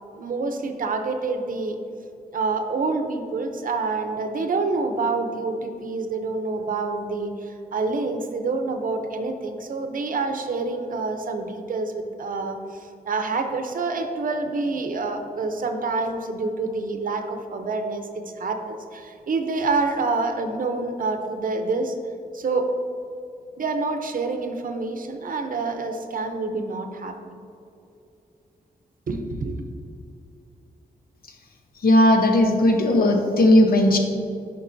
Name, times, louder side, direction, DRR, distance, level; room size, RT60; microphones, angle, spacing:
voice 1, 0.1-1.8 2.3-21.9 22.3-22.7 23.6-27.1 29.1-29.6, right 3 dB, 60° right, 5 dB, 0.7 m, -27 dB
voice 2, 31.8-34.0, left 1 dB, 70° left, 3 dB, 0.9 m, -17 dB
9.8 x 5.4 x 2.7 m, 2.6 s
wide cardioid pair, 95°, 16 cm